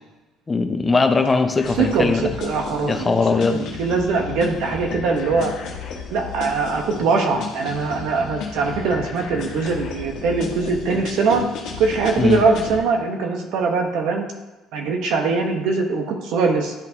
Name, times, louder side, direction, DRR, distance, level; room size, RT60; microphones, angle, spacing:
voice 1, 0.5-2.3 2.8-3.6 12.2-12.4, left 4 dB, 20° left, 8 dB, 0.5 m, -20 dB
sound 1, 1.6-12.8, left 5 dB, 60° left, 1.2 m, -33 dB
voice 2, 1.8-3.1 3.5-5.5 6.1-11.4 11.8-14.2 14.7-16.7, right 4 dB, 70° right, 3 dB, 1.1 m, -22 dB
10.5 x 4.1 x 2.9 m, 1.1 s
cardioid pair, 135°, 0 cm